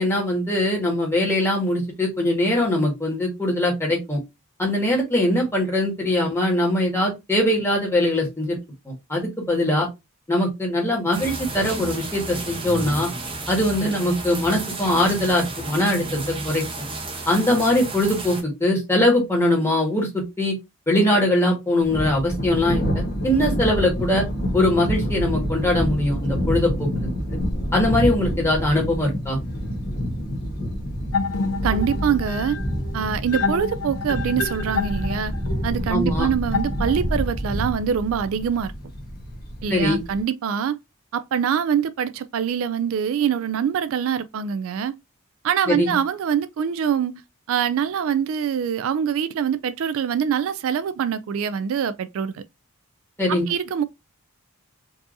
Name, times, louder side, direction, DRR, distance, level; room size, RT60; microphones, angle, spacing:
voice 1, 0.0-4.2 4.6-8.6 8.8-9.9 10.3-13.1 13.5-16.6 17.3-20.6 20.9-24.2 24.5-27.1 27.7-29.4 35.9-36.3 39.7-40.0 45.7-45.9 53.2-53.5, left 1 dB, 10° left, 1.5 m, -21 dB
sound 1, 11.1-18.4, right 2 dB, 25° right, 0.8 m, -32 dB
Thunder, 21.8-40.2, equal, 45° left, 1.1 m, -28 dB
sound 2, 31.1-37.3, left 3 dB, 85° left, 0.8 m, -28 dB
voice 2, 31.6-32.6 32.9-35.3 35.6-38.7 39.6-40.8 41.1-45.0 45.4-47.2 47.5-52.4 53.3-53.8, right 8 dB, 65° right, 0.3 m, -24 dB
4.5 x 2.8 x 2.5 m
head